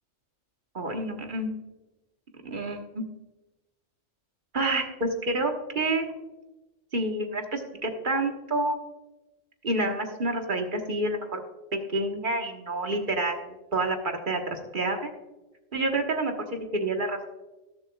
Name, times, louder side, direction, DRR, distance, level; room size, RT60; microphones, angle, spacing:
voice 1, 0.7-1.5 2.4-3.0 4.5-6.1 6.9-8.8 9.6-11.4 11.7-15.1 15.7-17.3, right 2 dB, 40° right, 3 dB, 1.4 m, -28 dB
20.0 x 7.5 x 2.3 m, 1.1 s
omnidirectional pair, 1.4 m